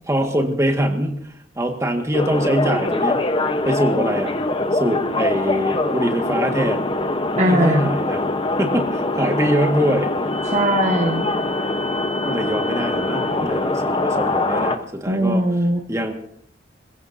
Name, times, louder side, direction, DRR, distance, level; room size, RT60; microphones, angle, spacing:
voice 1, 0.0-1.2 1.6-3.2 3.7-4.3 4.7-6.9 7.4-8.2 8.6-10.1 12.3-15.4 15.9-16.1, equal, 15° right, 4 dB, 1.8 m, -23 dB
sound 1, 2.1-14.8, left 2 dB, 30° left, 1.0 m, -23 dB
voice 2, 7.4-7.9 10.5-11.3 15.1-15.8, right 1 dB, 35° right, -1 dB, 1.7 m, -19 dB
27.5 x 15.5 x 2.8 m, 0.69 s
head